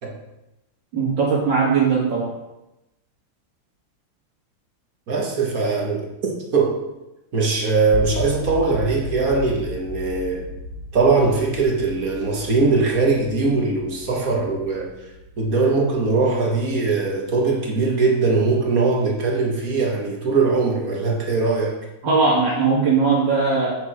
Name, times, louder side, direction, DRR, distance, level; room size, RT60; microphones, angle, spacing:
voice 1, 0.9-2.3 22.0-23.7, right 4 dB, 65° right, -8 dB, 2.6 m, -19 dB
voice 2, 5.1-6.8 7.3-10.5 10.9-14.9 15.4-21.8, right 4 dB, 50° right, 0 dB, 1.7 m, -21 dB
sound 1, 7.9-17.9, left 2 dB, 70° left, 1.7 m, -35 dB
8.6 x 6.1 x 4.7 m, 0.94 s
omnidirectional pair, 2.2 m